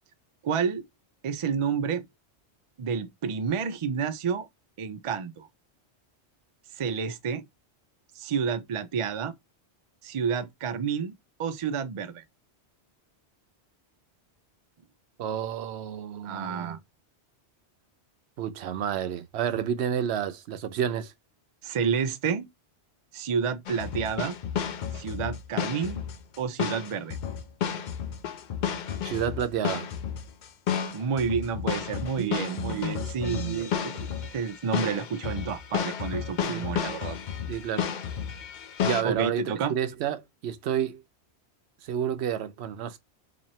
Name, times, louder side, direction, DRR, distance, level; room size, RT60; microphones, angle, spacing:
voice 1, 0.4-0.9 1.2-2.1 2.8-4.5 4.8-5.5 6.8-7.4 8.2-9.3 10.0-11.1 11.4-12.2 16.2-16.8 21.6-22.5 23.1-24.4 24.9-26.0 26.4-27.2 30.9-33.9 34.3-37.2 39.0-39.7, right 6 dB, 60° right, 0.3 m, -29 dB
voice 2, 15.2-16.8 18.4-21.1 29.0-29.9 32.2-33.7 36.5-36.7 37.5-37.9 38.8-41.0 41.8-43.0, right 9 dB, 75° right, 0.8 m, -30 dB
sound 1, 23.7-39.0, left 8 dB, 55° left, 0.5 m, -32 dB
3.1 x 2.6 x 4.1 m
omnidirectional pair, 1.1 m